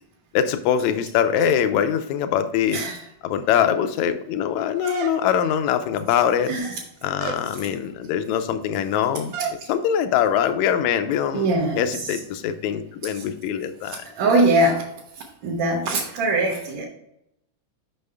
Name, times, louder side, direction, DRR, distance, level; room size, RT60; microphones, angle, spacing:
voice 1, 0.3-2.8 3.2-6.6 7.0-11.5 11.8-14.0, left 9 dB, 75° left, 9 dB, 1.9 m, -23 dB
sound 1, 4.8-5.6 6.4-6.8 7.2-7.5 9.3-9.7, right 7 dB, 85° right, 1.3 m, -32 dB
voice 2, 11.3-11.9 13.8-14.8 15.2-16.9, right 2 dB, 65° right, -3 dB, 2.3 m, -22 dB
6.7 x 6.1 x 3.4 m, 0.79 s
omnidirectional pair, 3.6 m